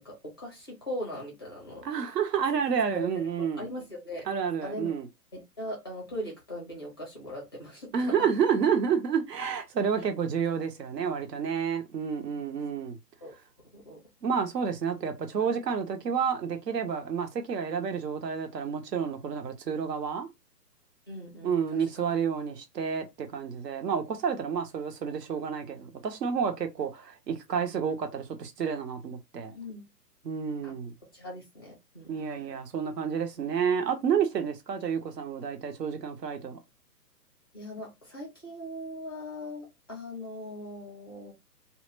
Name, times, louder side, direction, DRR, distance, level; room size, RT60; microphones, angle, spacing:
voice 1, 0.0-2.2 2.9-3.1 3.4-4.2 4.6-4.9 5.3-8.1 13.2-13.3 13.7-14.0 21.1-22.1 29.5-29.8 30.6-30.7 31.1-32.1 37.5-41.3, equal, 15° left, 0.4 m, -40 dB
voice 2, 1.8-3.6 4.3-5.1 7.9-13.0 14.2-20.3 21.4-29.5 30.2-30.9 32.1-36.6, right 7 dB, 75° right, 0.8 m, -30 dB
2.1 x 2.0 x 3.1 m
hypercardioid pair, 140°, 49 cm